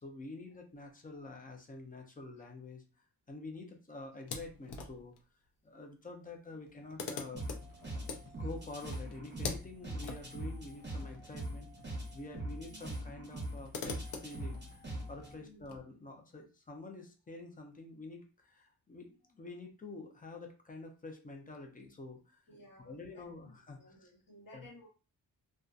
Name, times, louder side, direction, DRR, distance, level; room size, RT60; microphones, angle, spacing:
voice 1, 0.0-5.1 5.6-7.4 8.3-11.7 12.1-22.4 22.8-24.1 24.5-24.7, left 2 dB, 20° left, 2 dB, 0.5 m, -48 dB
sound 1, 4.2-5.2 6.2-6.3 6.5-12.1 12.3-12.4 13.2-15.7, left 5 dB, 70° left, 0.6 m, -45 dB
sound 2, 7.3-15.3, right 1 dB, 25° right, 0.8 m, -42 dB
voice 2, 15.3-15.7 22.5-23.2 23.8-24.9, left 1 dB, 50° left, -3 dB, 1.2 m, -56 dB
2.6 x 2.2 x 2.4 m, 0.35 s
wide cardioid pair, 120°, 41 cm